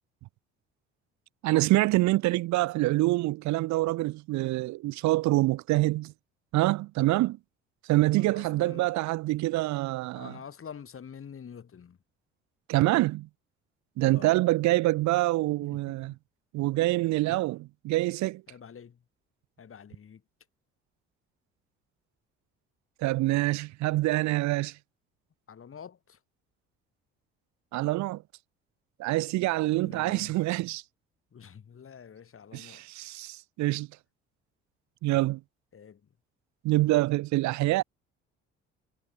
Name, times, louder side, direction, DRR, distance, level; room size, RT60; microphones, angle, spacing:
voice 1, 1.4-6.1 6.5-7.4 7.9-10.3 12.7-13.3 14.0-16.1 16.5-18.4 23.0-24.8 27.7-28.2 29.0-30.8 32.5-33.9 35.0-35.4 36.6-37.8, right 18 dB, 70° right, 0.6 m, -26 dB
voice 2, 8.2-8.9 10.1-12.0 14.1-14.3 15.6-15.8 17.3-17.4 18.5-19.0 19.6-20.2 25.5-26.2 29.8-30.4 31.3-32.9 35.7-36.0, left 7 dB, 45° left, 4.3 m, -47 dB
supercardioid pair, 65°, 30 cm